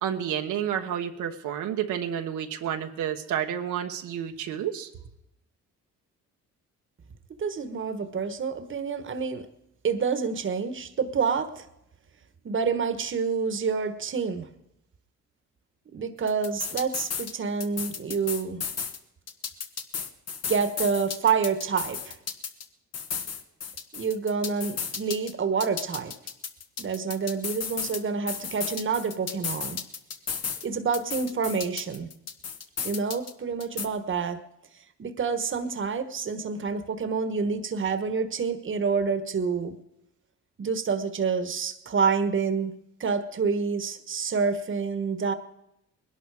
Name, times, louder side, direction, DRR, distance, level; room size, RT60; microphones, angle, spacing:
voice 1, 0.0-4.9, right 9 dB, 80° right, 4 dB, 1.2 m, -30 dB
voice 2, 7.4-9.5 9.8-11.7 12.4-14.5 15.9-18.6 20.5-22.2 23.9-26.1 26.8-29.8 30.6-32.1 32.8-34.4 35.0-39.7 40.6-42.7 43.0-45.3, right 5 dB, 40° right, 11 dB, 1.3 m, -28 dB
sound 1, 16.3-17.3 17.6-19.0 19.3-22.6 22.9-25.3 25.6-28.0 28.3-30.6 30.9-33.3 33.6-33.9, left 6 dB, 55° left, 1.4 m, -34 dB
20.5 x 11.5 x 4.9 m, 0.86 s
cardioid pair, 90°, 30 cm